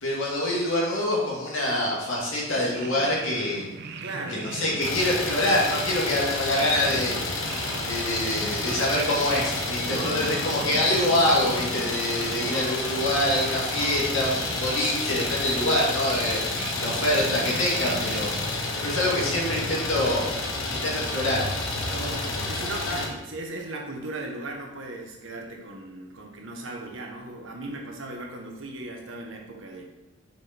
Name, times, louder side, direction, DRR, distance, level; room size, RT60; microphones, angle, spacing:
voice 1, 0.0-3.6 4.3-7.2 7.8-16.4 16.8-18.3 18.8-20.2 20.7-21.5, left 1 dB, 70° left, -4 dB, 2.2 m, -25 dB
sound 1, 2.5-18.5, right 4 dB, 55° right, 0.5 m, -39 dB
voice 2, 4.0-4.4 9.9-10.3 21.8-29.9, right 2 dB, 75° right, 1 dB, 1.3 m, -37 dB
Idling, 4.8-23.1, left 2 dB, 85° left, 1.2 m, -30 dB
6.1 x 5.1 x 4.4 m, 0.97 s
head